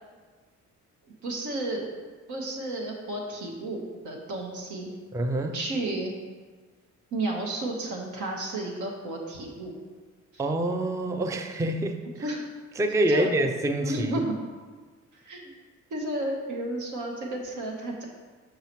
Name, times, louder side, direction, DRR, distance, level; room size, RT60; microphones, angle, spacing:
voice 1, 1.2-1.9 2.3-4.9 5.5-6.1 7.1-9.7 12.2-12.4 13.1-13.3 13.8-14.2 15.1-15.5 15.9-18.0, right 1 dB, 80° right, 0 dB, 1.3 m, -32 dB
voice 2, 5.1-5.6 10.4-12.0 12.8-14.2, right 1 dB, 10° right, 6 dB, 0.4 m, -26 dB
6.8 x 5.6 x 3.0 m, 1.4 s
cardioid pair, 90°, 30 cm